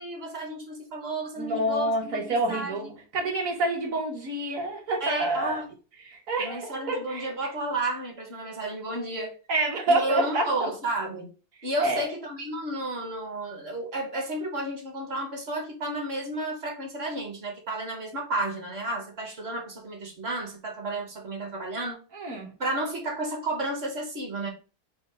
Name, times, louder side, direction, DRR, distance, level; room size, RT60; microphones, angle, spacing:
voice 1, 0.0-2.9 5.0-5.6 6.4-9.4 9.9-11.3 11.6-22.0 22.6-24.5, right 2 dB, 50° right, 1.1 m, -32 dB
voice 2, 1.4-5.6 6.0-7.3 9.5-10.7 11.8-12.1 22.1-22.5, right 2 dB, 65° right, 1.5 m, -28 dB
4.5 x 2.1 x 4.6 m
omnidirectional pair, 1.6 m